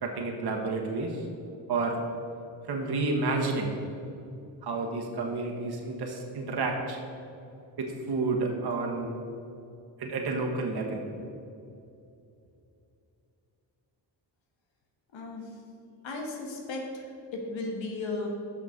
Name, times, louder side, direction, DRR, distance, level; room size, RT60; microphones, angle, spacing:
voice 1, 0.0-1.2 1.7-2.0 2.7-3.7 4.6-7.0 7.8-9.2 10.0-11.0, right 3 dB, 60° right, 1 dB, 1.3 m, -30 dB
voice 2, 15.1-15.5 16.0-17.0 17.3-18.3, left 3 dB, 90° left, 1 dB, 1.4 m, -35 dB
6.0 x 6.0 x 6.3 m, 2.7 s
cardioid pair, 90°, 44 cm